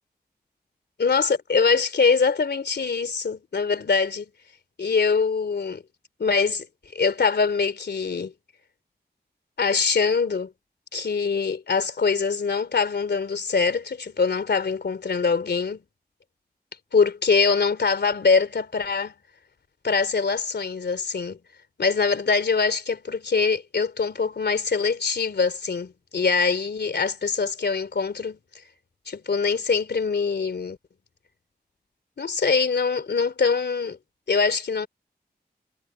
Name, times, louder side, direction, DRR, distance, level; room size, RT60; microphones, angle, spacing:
voice 1, 1.0-4.3 4.8-5.8 6.2-6.7 6.9-8.3 9.6-10.5 10.9-15.8 16.9-19.1 19.8-21.4 21.8-28.4 29.1-30.8 32.2-34.0 34.3-34.9, left 5 dB, 90° left, 3.0 m, -23 dB
wide cardioid pair, 70°, 17 cm